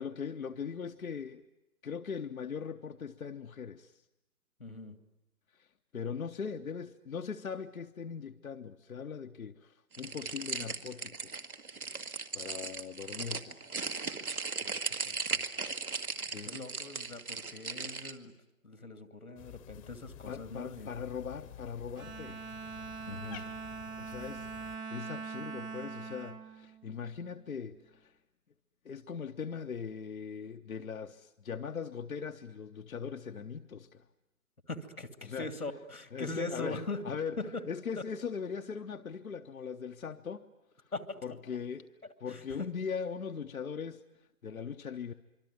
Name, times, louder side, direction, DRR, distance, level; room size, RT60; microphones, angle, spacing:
voice 1, 0.0-1.4 1.8-4.0 5.5-11.3 12.3-13.6 16.2-16.6 20.3-22.4 24.0-28.2 28.8-34.0 35.2-35.6 36.1-37.4 37.7-40.5 40.8-40.9 41.2-45.1, left 6 dB, 70° left, 1.0 m, -40 dB
voice 2, 4.6-5.0 14.6-15.4 16.4-18.3 18.6-20.9 23.1-23.4 34.7-37.0 37.4-37.6 38.0-38.1 40.9-41.4 42.3-42.4, left 2 dB, 90° left, 2.6 m, -41 dB
sound 1, 9.9-18.1, right 4 dB, 85° right, 2.0 m, -37 dB
Cat, 19.4-24.8, left 11 dB, 25° left, 1.0 m, -51 dB
Bowed string instrument, 22.0-27.5, right 5 dB, 10° right, 1.0 m, -43 dB
25.5 x 24.0 x 9.4 m
figure-of-eight pair, 130°, 43 cm